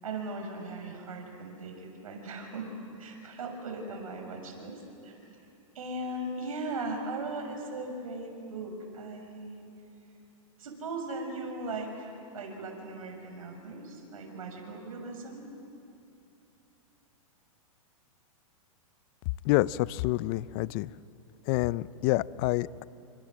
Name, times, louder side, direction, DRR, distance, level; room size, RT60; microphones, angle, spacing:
voice 1, 0.0-2.7 3.0-5.1 5.7-9.6 10.6-15.5, right 2 dB, 80° right, 3 dB, 6.7 m, -38 dB
voice 2, 19.4-20.9 21.5-22.8, left 18 dB, 40° left, 19 dB, 0.6 m, -27 dB
29.5 x 25.5 x 7.8 m, 2.9 s
hypercardioid pair, 140°, 18 cm